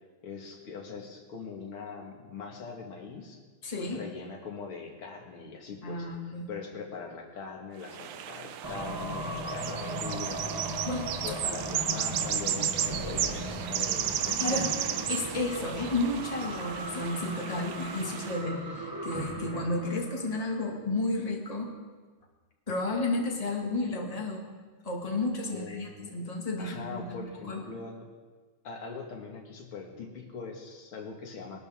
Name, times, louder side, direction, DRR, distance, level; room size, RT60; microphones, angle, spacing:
voice 1, 0.2-3.4 3.8-10.9 11.2-14.7 25.5-26.1 26.6-28.1 28.6-31.7, left 5 dB, 85° left, 1 dB, 2.6 m, -42 dB
voice 2, 3.6-4.0 5.8-6.5 10.9-11.2 14.4-14.7 15.1-21.7 22.7-24.5 24.8-27.2 27.5-27.6, left 2 dB, 20° left, 0 dB, 1.8 m, -32 dB
sound 1, 7.8-18.4, right 10 dB, 70° right, 1.3 m, -34 dB
sound 2, 8.6-20.6, right 1 dB, 20° right, 0.7 m, -38 dB
20.5 x 12.0 x 3.6 m, 1.4 s
omnidirectional pair, 2.3 m